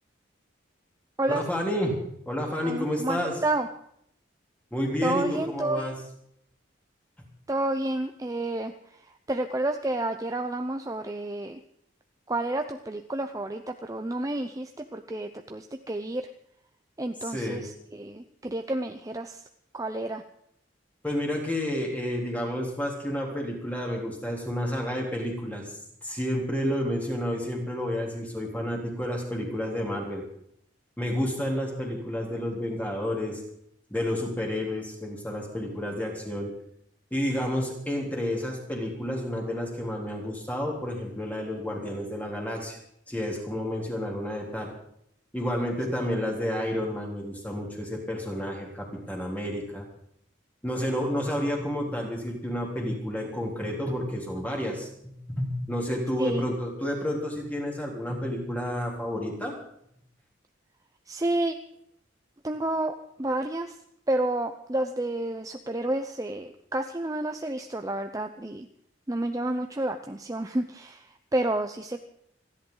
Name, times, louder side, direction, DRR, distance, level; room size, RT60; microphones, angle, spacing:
voice 1, 1.3-2.0 2.2-3.4 4.7-6.0 17.2-17.7 21.0-30.2 31.0-33.4 33.9-36.5 37.1-42.8 43.1-44.7 45.3-49.8 50.6-59.5, equal, 10° left, -1 dB, 3.4 m, -30 dB
voice 2, 2.6-3.7 5.0-5.9 7.5-8.7 9.3-11.6 12.3-16.2 17.0-19.4 19.7-20.2 56.2-56.5 61.1-61.5 62.4-63.7 64.1-68.7 69.1-71.0 71.3-72.1, right 1 dB, 20° right, 6 dB, 0.6 m, -30 dB
28.5 x 11.0 x 3.9 m, 0.71 s
head